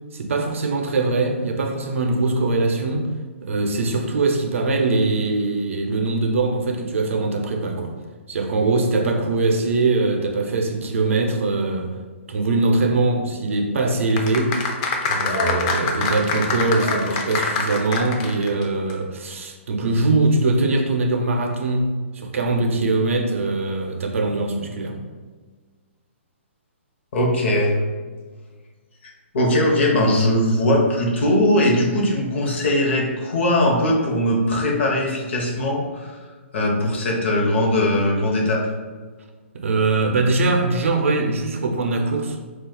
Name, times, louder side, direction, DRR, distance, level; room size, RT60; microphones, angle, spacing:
voice 1, 0.1-3.1 3.4-7.9 8.3-11.9 12.3-14.6 15.1-25.0 39.5-42.5, right 3 dB, 75° right, 3 dB, 0.5 m, -22 dB
sound 1, 14.1-18.6 18.9-19.0, left 4 dB, 30° left, 0.4 m, -24 dB
voice 2, 27.1-27.8 29.0-36.2 36.5-38.7, left 1 dB, 60° left, 0 dB, 0.7 m, -20 dB
2.3 x 2.3 x 3.7 m, 1.4 s
hypercardioid pair, 140°, 7 cm